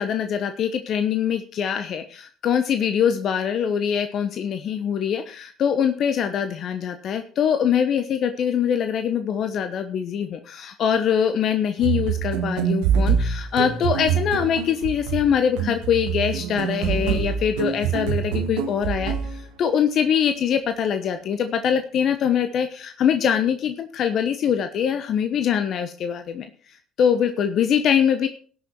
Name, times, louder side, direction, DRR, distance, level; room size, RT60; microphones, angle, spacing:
voice 1, 0.0-26.5 27.0-28.3, left 8 dB, 55° left, 8 dB, 1.0 m, -23 dB
sound 1, 11.8-19.4, right 7 dB, 75° right, 1.5 m, -25 dB
17.5 x 6.5 x 4.5 m, 0.42 s
hypercardioid pair, 55°, 0 cm